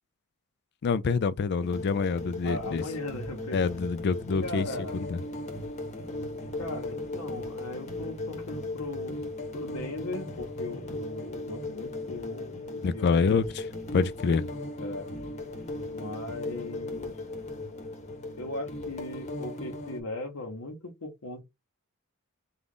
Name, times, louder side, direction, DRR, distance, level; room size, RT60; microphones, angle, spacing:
voice 1, 0.8-2.8 3.5-4.7 4.9-5.2 12.8-13.6 13.9-14.5, left 5 dB, 50° left, 0.3 m, -26 dB
sound 1, 1.6-20.0, left 2 dB, 30° left, 1.0 m, -37 dB
voice 2, 2.4-3.7 4.4-5.0 6.6-9.2 9.5-13.4 14.8-15.1 15.9-17.2 18.4-21.4, left 2 dB, 90° left, 0.9 m, -38 dB
3.7 x 2.3 x 3.5 m
head